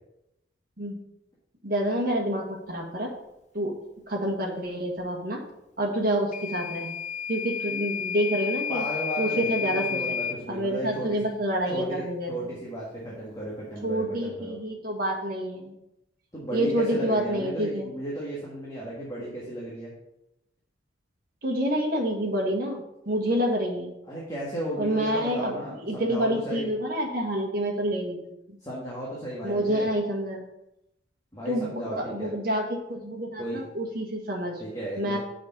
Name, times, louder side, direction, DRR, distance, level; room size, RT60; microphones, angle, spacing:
voice 1, 1.6-3.1 3.5-3.8 4.1-5.4 5.8-6.9 7.3-8.8 9.2-10.2 10.5-12.5 13.8-15.7 16.5-17.9 21.4-23.9 24.8-25.5 25.8-28.2 28.5-28.6 29.4-30.5 31.5-34.5 35.0-35.2, right 1 dB, 50° right, 0 dB, 1.5 m, -28 dB
Microwave oven / Alarm, 6.3-10.4, left 7 dB, 35° left, 0.7 m, -31 dB
voice 2, 8.7-11.2 11.7-14.6 16.3-19.9 24.1-26.7 28.6-29.9 31.3-32.3 33.4-33.7 34.6-35.2, right 1 dB, 20° left, -6 dB, 1.5 m, -35 dB
6.4 x 4.9 x 5.4 m, 0.84 s
head